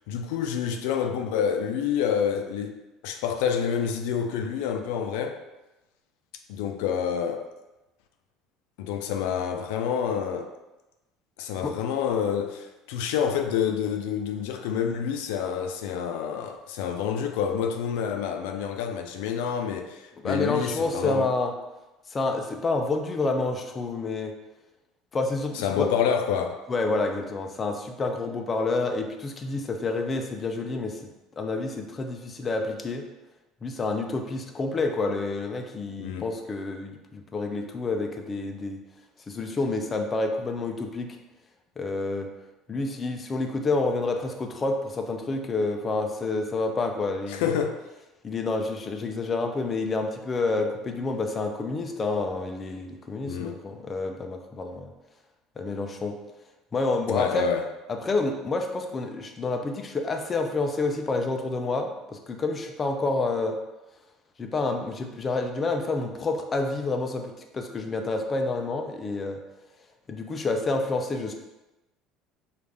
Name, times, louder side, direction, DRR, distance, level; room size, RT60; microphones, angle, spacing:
voice 1, 0.1-2.8 3.0-5.4 6.5-7.4 8.8-10.5 11.4-21.3 25.5-26.6 36.0-36.3 47.3-47.8 53.2-53.6 57.1-57.7, left 8 dB, 90° left, 0.4 m, -28 dB
voice 2, 20.2-21.5 22.1-24.3 25.1-25.9 26.7-31.0 31.4-33.1 33.6-38.8 39.3-41.1 41.8-42.3 42.7-47.5 48.2-54.9 55.6-56.2 56.7-57.5 57.9-63.6 64.4-69.4 70.1-71.3, left 3 dB, 25° left, 0.4 m, -28 dB
5.2 x 2.4 x 3.3 m
cardioid pair, 140°, 0 cm